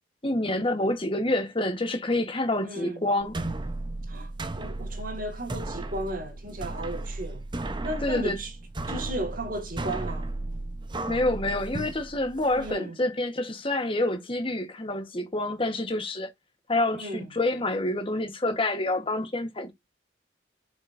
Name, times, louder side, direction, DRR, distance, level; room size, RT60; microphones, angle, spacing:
voice 1, 0.2-3.3 8.0-8.4 11.1-16.3 16.7-19.7, left 2 dB, 30° left, 1.3 m, -27 dB
voice 2, 2.6-3.0 4.1-7.5 7.8-8.5 8.9-10.3 12.6-13.0 16.9-17.4, right 1 dB, 45° right, 2.2 m, -35 dB
sound 1, 3.2-12.7, right 2 dB, 25° right, 0.8 m, -35 dB
11.0 x 5.3 x 2.6 m
head